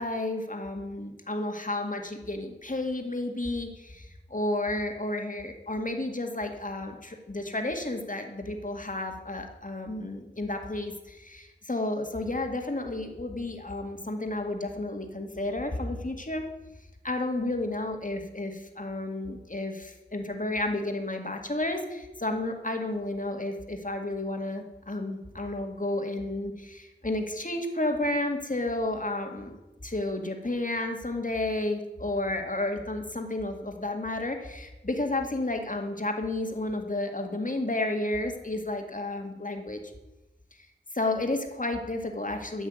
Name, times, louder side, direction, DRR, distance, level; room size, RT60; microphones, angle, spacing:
voice 1, 0.0-16.4 17.0-29.5 29.8-39.8 40.9-42.7, left 2 dB, 40° left, 4 dB, 2.1 m, -31 dB
13.0 x 6.2 x 9.4 m, 1.0 s
wide cardioid pair, 55°, 20 cm